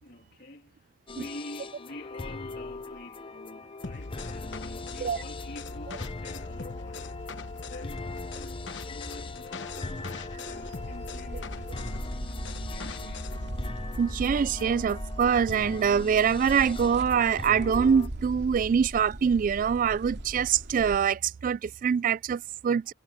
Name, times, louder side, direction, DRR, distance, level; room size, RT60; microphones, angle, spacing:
voice 1, 0.0-7.2 7.6-13.4, left 2 dB, 55° left, 2.3 m, -47 dB
sound 1, 1.1-18.1, left 3 dB, 30° left, 0.7 m, -41 dB
sound 2, 3.8-13.5, left 3 dB, 75° left, 1.0 m, -41 dB
sound 3, 9.6-21.0, right 1 dB, 65° right, 2.5 m, -39 dB
voice 2, 14.0-22.9, right 7 dB, 45° right, 0.3 m, -24 dB
head